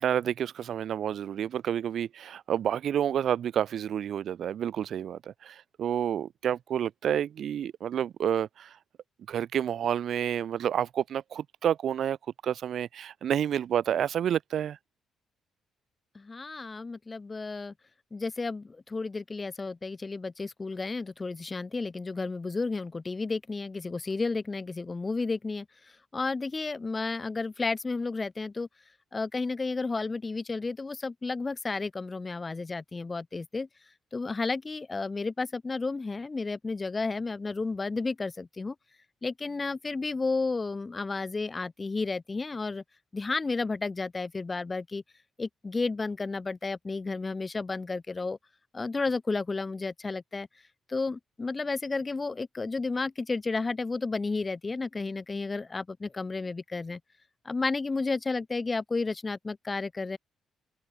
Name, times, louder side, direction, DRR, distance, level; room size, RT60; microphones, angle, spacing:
voice 1, 0.0-8.8 9.3-12.2 12.4-14.8, right 9 dB, 65° right, 1.3 m, -29 dB
voice 2, 16.1-17.7 18.1-28.7 29.1-33.7 34.1-38.7 39.2-42.8 43.1-45.0 45.4-48.4 48.7-50.5 50.9-57.0 57.4-60.2, left 3 dB, 25° left, 0.7 m, -32 dB
open air
cardioid pair, 90°, 0 cm